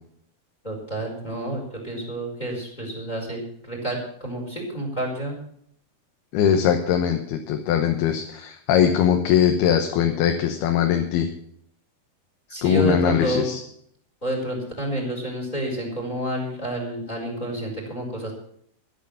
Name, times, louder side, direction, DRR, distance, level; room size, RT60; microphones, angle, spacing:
voice 1, 0.6-5.4 12.5-13.5 14.2-18.3, right 1 dB, 10° left, 1 dB, 4.2 m, -29 dB
voice 2, 6.3-11.3 12.6-13.6, left 8 dB, 80° left, 5 dB, 3.0 m, -21 dB
12.5 x 10.0 x 6.9 m, 0.67 s
omnidirectional pair, 4.5 m